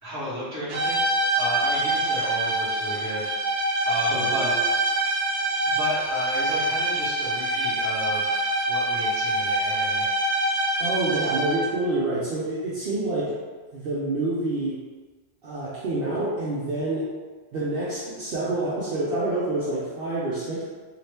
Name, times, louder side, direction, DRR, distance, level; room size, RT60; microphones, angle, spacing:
voice 1, 0.0-1.0 1.4-3.3 3.8-4.5 5.6-10.1, equal, 15° right, -10 dB, 1.1 m, -34 dB
sound 1, 0.7-11.8, right 1 dB, 90° right, 0.9 m, -25 dB
voice 2, 4.1-4.5 10.8-13.4 13.7-14.8 15.4-17.1 17.5-20.6, right 2 dB, 65° right, -7 dB, 0.8 m, -27 dB
2.7 x 2.5 x 3.3 m, 1.3 s
omnidirectional pair, 1.1 m